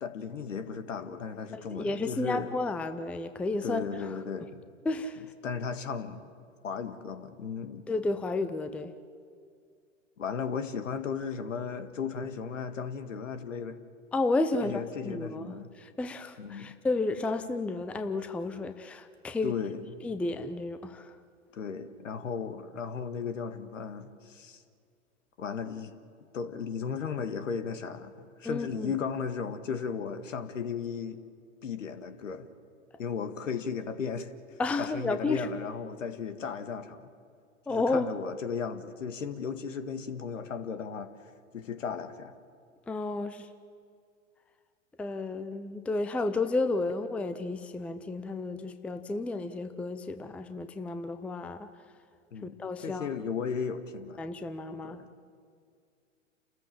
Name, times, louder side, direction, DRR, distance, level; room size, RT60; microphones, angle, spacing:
voice 1, 0.0-2.5 3.6-4.6 5.4-6.2 6.6-7.9 10.2-13.8 14.6-15.7 16.4-16.7 19.4-19.9 21.5-24.6 25.4-26.0 26.3-31.2 31.6-32.5 33.0-37.1 37.7-41.1 41.5-42.3 52.3-54.2 54.8-55.0, left 6 dB, 70° left, 9 dB, 1.8 m, -35 dB
voice 2, 1.5-3.9 4.8-5.2 7.9-8.9 14.1-19.5 20.0-21.1 28.4-28.9 34.6-35.5 37.7-38.1 42.9-43.5 45.0-51.7 52.4-53.1 54.2-55.0, left 3 dB, 5° left, 10 dB, 0.5 m, -32 dB
29.5 x 14.0 x 7.6 m, 2.3 s
figure-of-eight pair, 105°, 39 cm